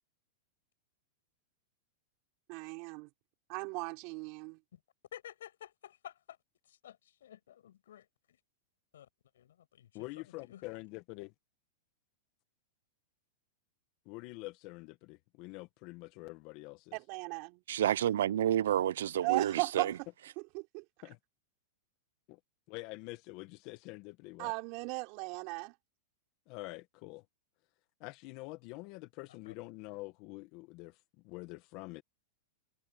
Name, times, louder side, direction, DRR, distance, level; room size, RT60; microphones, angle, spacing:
voice 1, 2.5-3.1 3.5-4.6 16.9-17.6 19.2-19.9 20.5-20.8 24.4-25.7, right 31 dB, 50° right, 4.7 m, -36 dB
voice 2, 5.1-6.4 6.7-8.4 8.9-9.1 9.3-9.9 10.3-10.6 29.5-29.6, left 11 dB, 80° left, 7.5 m, -52 dB
voice 3, 9.9-11.3 14.1-17.0 19.9-20.0 21.0-21.2 22.3-22.4 22.7-24.5 26.5-27.2 28.0-32.0, left 22 dB, 50° left, 1.6 m, -46 dB
voice 4, 17.7-19.9, right 11 dB, 80° right, 0.5 m, -29 dB
hypercardioid pair, 125°, 0 cm